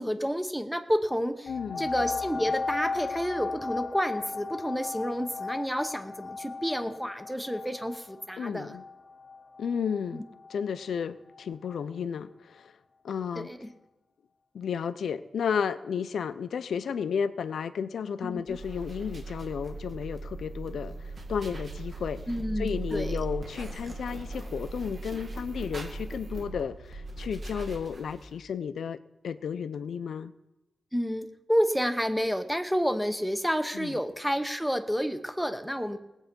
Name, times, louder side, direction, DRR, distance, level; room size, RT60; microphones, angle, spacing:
voice 1, 0.0-1.5 1.8-8.8 10.1-10.2 13.3-13.7 18.2-18.4 22.3-23.2 30.9-36.0, equal, ahead, 8 dB, 0.9 m, -30 dB
voice 2, 1.5-1.9 8.4-8.8 9.6-10.2 10.5-12.7 13.0-13.5 14.5-22.2 22.6-30.3 33.7-34.0, left 7 dB, 80° left, 13 dB, 0.5 m, -33 dB
sound 1, 1.5-10.7 11.4-11.5, left 4 dB, 40° left, 0.7 m, -36 dB
sound 2, 18.5-28.4, right 2 dB, 40° right, 2.1 m, -38 dB
19.0 x 8.1 x 5.3 m, 1.0 s
wide cardioid pair, 150°, 0 cm